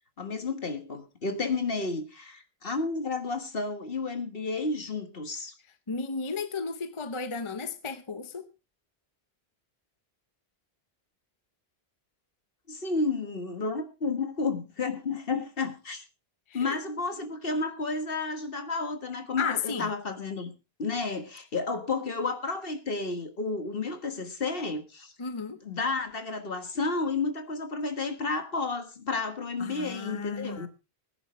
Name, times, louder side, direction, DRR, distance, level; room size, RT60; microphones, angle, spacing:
voice 1, 0.2-5.5 12.7-16.0 16.5-20.5 20.8-25.1 25.6-30.7, left 3 dB, 55° left, 1.8 m, -31 dB
voice 2, 5.9-8.5 16.5-16.8 19.4-19.9 25.2-25.6 29.6-30.7, left 5 dB, 30° left, 0.9 m, -34 dB
20.5 x 10.0 x 3.1 m
omnidirectional pair, 1.1 m